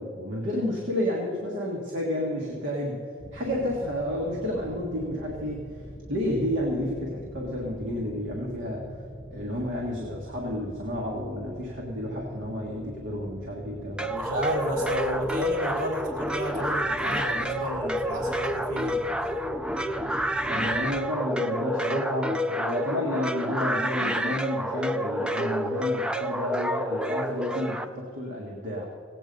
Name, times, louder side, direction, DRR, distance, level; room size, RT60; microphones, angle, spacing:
voice 1, 0.0-3.0 3.3-5.8 6.1-9.0 9.3-14.1 20.5-28.9, left 1 dB, 60° right, -2 dB, 1.6 m, -31 dB
sound 1, 3.2-21.0, equal, 15° left, 2.1 m, -44 dB
sound 2, 14.0-27.9, equal, 5° right, 0.3 m, -29 dB
voice 2, 14.1-19.1, equal, 75° right, -3 dB, 1.6 m, -32 dB
17.0 x 8.5 x 5.3 m, 2.4 s
head